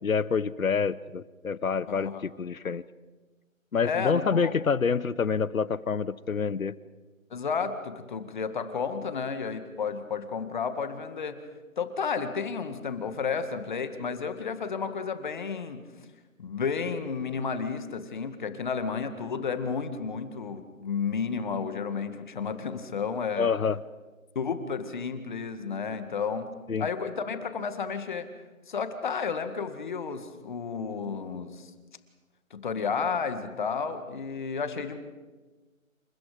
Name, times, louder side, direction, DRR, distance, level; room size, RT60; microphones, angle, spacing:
voice 1, 0.0-2.8 3.7-6.7 23.4-23.8 26.7-26.9, left 5 dB, 80° left, 19 dB, 1.2 m, -27 dB
voice 2, 1.9-2.3 3.8-4.5 7.3-11.3 11.8-15.8 16.4-23.5 24.4-26.5 26.8-28.3 28.7-31.7 32.5-35.0, left 5 dB, 35° left, 9 dB, 2.0 m, -32 dB
29.0 x 29.0 x 5.1 m, 1.3 s
figure-of-eight pair, 160°, 41 cm